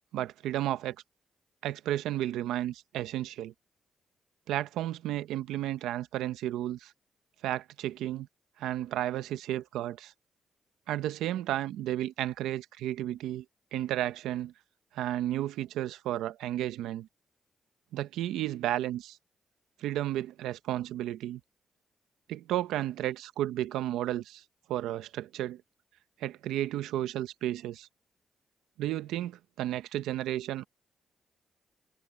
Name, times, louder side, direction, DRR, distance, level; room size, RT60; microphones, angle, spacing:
voice 1, 0.1-1.0 1.6-3.5 4.5-6.9 7.4-8.3 8.6-10.1 10.9-13.4 13.7-14.5 14.9-17.1 17.9-19.2 19.8-21.4 22.3-24.4 24.7-25.6 26.2-27.9 28.8-30.6, right 13 dB, 90° right, 0.9 m, -33 dB
supercardioid pair, 55°, 0 cm